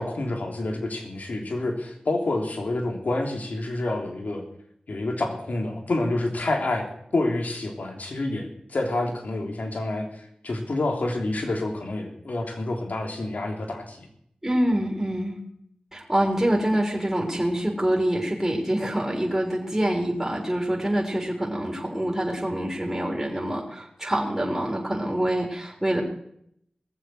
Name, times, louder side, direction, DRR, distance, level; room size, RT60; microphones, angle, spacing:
voice 1, 0.0-4.4 4.9-6.9 7.1-10.1 10.4-14.1, left 2 dB, 75° left, 2 dB, 3.2 m, -28 dB
voice 2, 14.4-15.4 15.9-26.0, right 1 dB, 15° right, -1 dB, 4.2 m, -25 dB
20.5 x 7.4 x 6.6 m, 0.70 s
cardioid pair, 45°, 3 cm